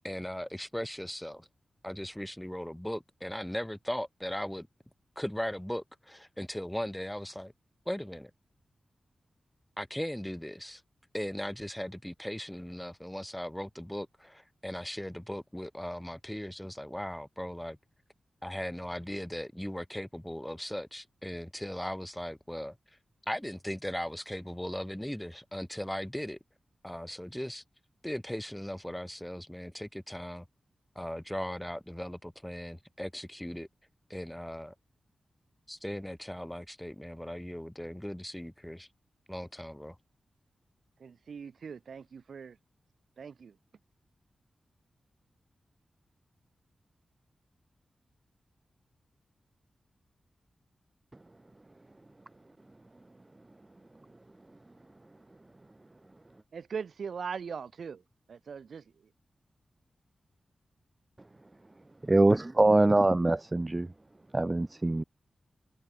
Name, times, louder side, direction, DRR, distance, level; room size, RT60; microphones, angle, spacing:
voice 1, 0.0-1.5 1.8-4.7 5.2-7.5 7.9-8.3 9.8-10.8 11.1-17.8 18.4-22.8 23.3-26.4 26.8-27.6 28.0-30.5 31.0-33.7 34.1-34.7 35.7-38.9 39.3-40.0, equal, 5° left, 3.5 m, -38 dB
voice 2, 41.0-42.6 43.2-43.6 56.5-58.0 58.3-59.1, right 6 dB, 75° right, 4.8 m, -40 dB
voice 3, 62.1-63.9 64.3-65.0, right 2 dB, 20° right, 0.4 m, -23 dB
wide cardioid pair, 140°, 0 cm